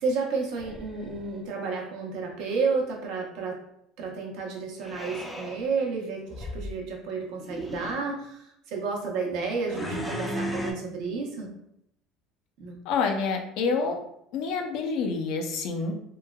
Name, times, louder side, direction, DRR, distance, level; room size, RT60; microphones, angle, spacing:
voice 1, 0.0-3.6 4.0-11.5 12.6-12.8, right 4 dB, 70° right, 0 dB, 0.7 m, -31 dB
sound 1, 0.6-1.4 4.8-5.6 6.3-6.7 7.4-8.0 9.7-10.7, equal, 5° left, 0.4 m, -35 dB
voice 2, 12.9-14.0 14.3-15.9, left 4 dB, 65° left, 4 dB, 0.4 m, -27 dB
3.0 x 2.2 x 2.2 m, 0.75 s
cardioid pair, 125°, 0 cm